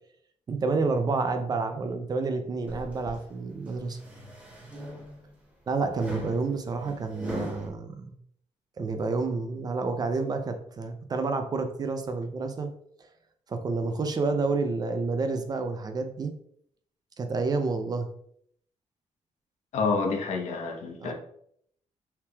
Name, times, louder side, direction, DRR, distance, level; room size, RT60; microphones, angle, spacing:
voice 1, 0.5-4.0 5.7-8.1 8.8-12.7 13.5-16.3 17.2-18.1 21.0-21.1, right 3 dB, 30° right, 7 dB, 0.4 m, -29 dB
sound 1, 2.7-3.2 3.7-5.4 5.9-7.7, equal, 10° right, 1.0 m, -40 dB
voice 2, 19.7-21.1, left 4 dB, 70° left, 2 dB, 0.9 m, -28 dB
5.7 x 3.4 x 2.3 m, 0.67 s
wide cardioid pair, 160°, 12 cm